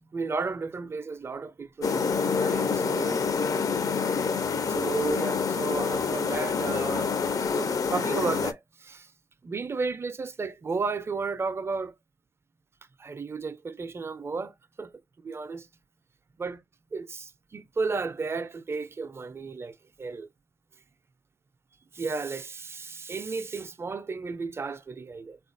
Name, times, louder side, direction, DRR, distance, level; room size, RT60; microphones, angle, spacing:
voice 1, 0.1-3.2 4.7-7.2 7.6-9.1 9.4-12.0 13.0-14.9 15.2-15.7 16.4-16.6 16.9-20.3 21.9-25.4, right 4 dB, 25° right, 0.4 m, -33 dB
sound 1, 1.8-8.5, left 5 dB, 40° left, 0.5 m, -27 dB
3.4 x 2.3 x 2.5 m
supercardioid pair, 70°, 9 cm